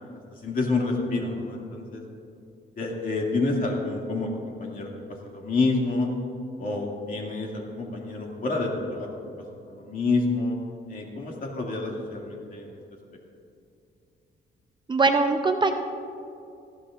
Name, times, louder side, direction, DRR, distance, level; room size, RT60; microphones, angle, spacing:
voice 1, 0.4-2.0 2.8-4.9 5.2-6.1 6.6-9.1 9.7-10.6 10.9-12.8, left 3 dB, 45° left, -1 dB, 2.4 m, -28 dB
voice 2, 14.9-15.7, right 3 dB, 25° right, 5 dB, 0.6 m, -21 dB
19.5 x 15.0 x 2.6 m, 2.6 s
cardioid pair, 135°, 19 cm